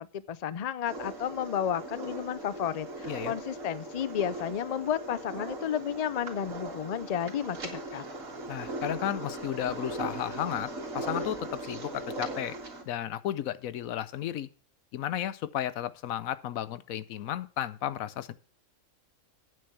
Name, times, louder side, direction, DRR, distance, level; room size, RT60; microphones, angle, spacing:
voice 1, 0.0-8.0, left 9 dB, 60° left, 16 dB, 0.4 m, -32 dB
sound 1, 0.9-12.8, right 2 dB, 70° right, 2.6 m, -39 dB
voice 2, 8.5-12.6 12.9-14.5 14.9-18.3, left 11 dB, 80° left, 15 dB, 1.1 m, -33 dB
8.9 x 6.8 x 6.8 m, 0.38 s
omnidirectional pair, 1.4 m